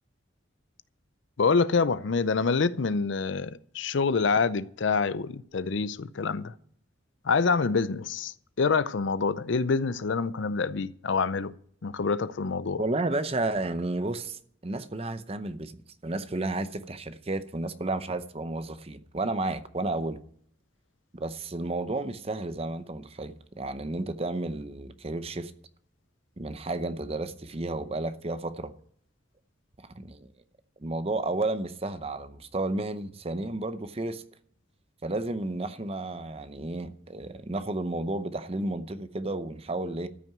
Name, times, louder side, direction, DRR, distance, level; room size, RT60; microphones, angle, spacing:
voice 1, 1.4-6.5 7.2-11.5 11.8-12.8, left 4 dB, 70° left, 0.5 m, -26 dB
voice 2, 12.8-20.2 21.1-25.5 26.4-28.7 29.9-30.3 30.8-34.2 35.0-40.1, right 2 dB, 30° right, 0.7 m, -32 dB
13.5 x 6.0 x 9.3 m
head